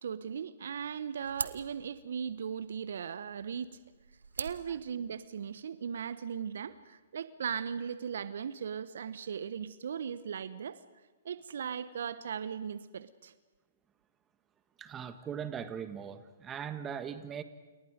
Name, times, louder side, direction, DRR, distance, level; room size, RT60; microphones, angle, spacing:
voice 1, 0.0-3.8 4.4-10.8 11.2-13.3, right 7 dB, 65° right, 14 dB, 1.0 m, -38 dB
sound 1, 0.6-5.6, right 4 dB, 80° right, 1.2 m, -45 dB
voice 2, 14.8-17.4, right 8 dB, 20° right, 10 dB, 1.6 m, -40 dB
30.0 x 29.0 x 5.2 m, 1.3 s
figure-of-eight pair, 120°, 0 cm